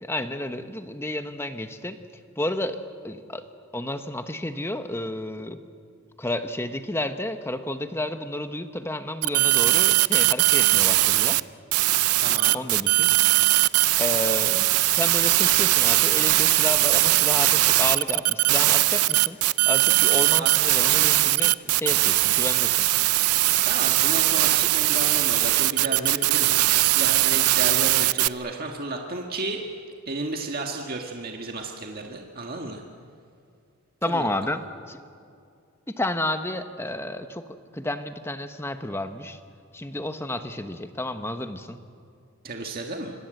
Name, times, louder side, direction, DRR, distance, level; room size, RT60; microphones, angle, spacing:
voice 1, 0.0-2.0 2.4-3.5 3.7-5.6 6.2-11.5 12.5-13.1 14.0-19.4 19.6-22.9 34.0-35.0 35.9-37.5 37.7-39.4 39.7-41.8, left 1 dB, 10° left, 8 dB, 1.1 m, -31 dB
sound 1, 9.2-11.4 11.7-28.3, right 17 dB, 85° right, 0.6 m, -20 dB
voice 2, 12.2-12.6 20.4-20.5 23.6-29.6 30.1-32.8 34.1-34.3 42.4-43.1, right 2 dB, 45° right, 2 dB, 1.8 m, -33 dB
26.5 x 25.5 x 7.9 m, 2.3 s
head